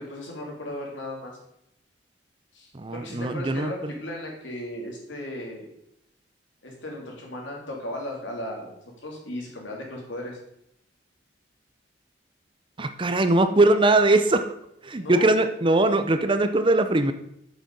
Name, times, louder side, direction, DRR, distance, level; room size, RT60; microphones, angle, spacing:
voice 1, 0.0-1.4 2.5-5.7 6.6-8.7 9.0-10.4 15.0-15.3, left 1 dB, 80° left, -1 dB, 3.0 m, -36 dB
voice 2, 2.7-3.9 12.8-14.5 14.8-17.1, right 2 dB, 25° right, 9 dB, 0.6 m, -21 dB
8.2 x 6.4 x 5.4 m, 0.77 s
head